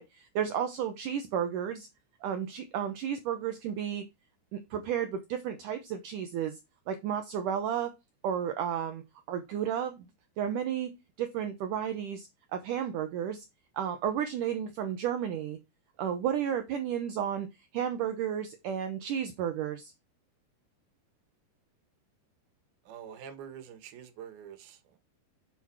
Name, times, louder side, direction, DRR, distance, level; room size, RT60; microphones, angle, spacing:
voice 1, 0.0-1.9 2.2-4.0 4.5-6.6 6.9-7.9 8.2-9.0 9.3-10.1 10.4-10.9 11.2-13.5 13.8-15.6 16.0-17.5 17.7-19.9, right 9 dB, 85° right, 1.8 m, -32 dB
voice 2, 22.9-25.0, right 8 dB, 70° right, 3.2 m, -46 dB
7.6 x 5.7 x 4.6 m
omnidirectional pair, 4.7 m